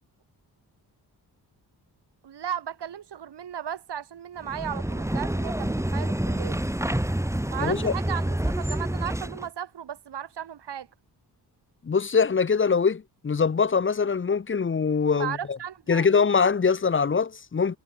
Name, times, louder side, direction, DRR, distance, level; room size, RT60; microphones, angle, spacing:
voice 1, 2.2-6.6 7.5-10.9 15.1-16.1, right 9 dB, 85° right, 6.0 m, -35 dB
sound 1, 4.4-9.5, right 1 dB, 5° right, 5.2 m, -28 dB
voice 2, 7.6-7.9 11.8-15.6 15.9-17.8, left 5 dB, 30° left, 0.9 m, -23 dB
wide cardioid pair, 105°, 40 cm